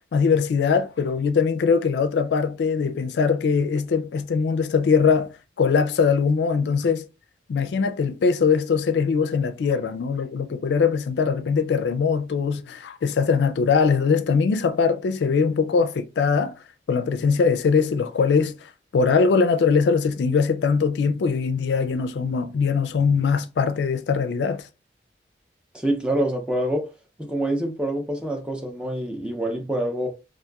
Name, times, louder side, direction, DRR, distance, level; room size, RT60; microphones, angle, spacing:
voice 1, 0.1-7.1 7.5-16.5 16.9-24.7, left 5 dB, 75° left, 0.3 m, -21 dB
voice 2, 25.7-26.9 27.2-30.1, right 1 dB, 5° right, 0.5 m, -26 dB
2.8 x 2.5 x 2.3 m
head